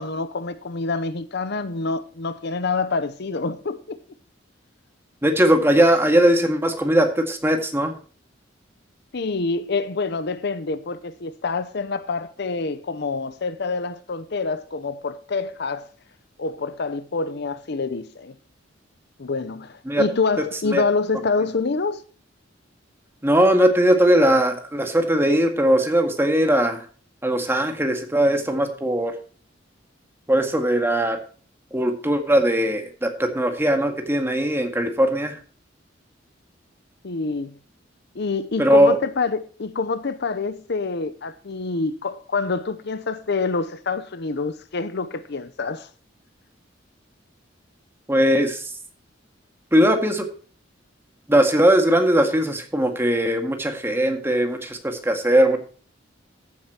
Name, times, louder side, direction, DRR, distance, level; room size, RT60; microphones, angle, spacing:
voice 1, 0.0-4.0 9.1-15.9 16.4-18.3 19.2-22.0 37.0-37.6 38.1-45.9, left 4 dB, 60° left, 0.7 m, -26 dB
voice 2, 5.2-7.9 19.9-20.0 20.7-20.8 23.2-26.9 27.2-29.1 30.3-31.2 31.7-35.4 38.6-39.0 48.1-48.7 49.7-50.3 51.3-55.6, right 1 dB, 15° right, 1.9 m, -19 dB
14.5 x 8.6 x 2.9 m
head